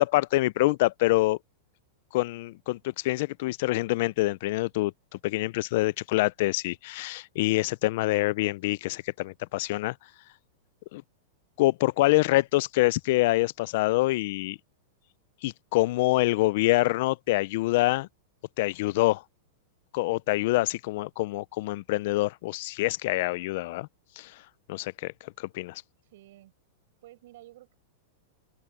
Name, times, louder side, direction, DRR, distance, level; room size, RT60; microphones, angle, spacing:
voice 1, 0.0-1.4 2.1-4.9 5.2-9.9 10.9-11.0 11.6-14.6 15.4-18.1 18.6-19.2 19.9-23.9 24.2-24.3 24.7-25.8, left 19 dB, 45° left, 0.4 m, -26 dB
voice 2, 26.0-26.5 27.0-27.8, right 15 dB, 50° right, 7.2 m, -51 dB
open air
supercardioid pair, 175°, 0 cm